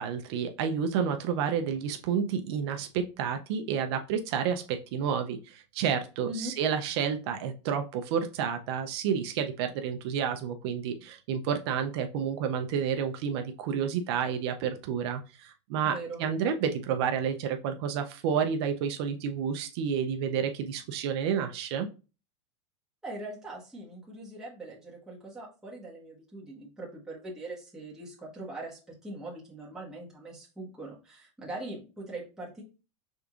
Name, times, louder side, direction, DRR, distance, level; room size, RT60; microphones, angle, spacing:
voice 1, 0.0-21.9, right 7 dB, 55° right, 6 dB, 0.5 m, -30 dB
voice 2, 15.8-16.2 23.0-32.6, right 2 dB, 5° right, -6 dB, 1.3 m, -41 dB
5.2 x 3.5 x 2.4 m, 0.32 s
supercardioid pair, 155°, 16 cm